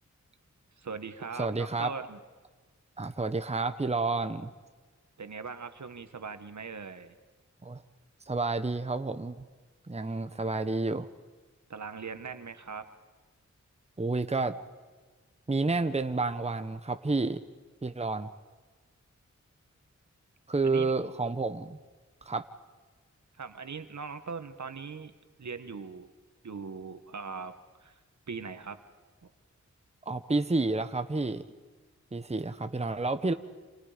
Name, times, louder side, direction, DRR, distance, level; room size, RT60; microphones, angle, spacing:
voice 1, 0.8-2.2 5.2-7.1 11.7-12.9 20.6-20.9 23.4-25.1 25.4-26.1 26.4-27.5 27.8-28.0 28.3-28.8 29.2-29.3, right 5 dB, 70° right, 9 dB, 1.6 m, -40 dB
voice 2, 1.4-1.9 3.0-4.5 7.6-7.8 8.3-9.4 9.9-11.1 14.0-14.6 15.5-17.4 17.8-18.3 20.5-21.8 22.2-22.5 30.1-31.4 32.1-33.3, right 3 dB, 20° right, 9 dB, 1.0 m, -30 dB
28.5 x 27.5 x 5.2 m, 1.4 s
wide cardioid pair, 70°, 30 cm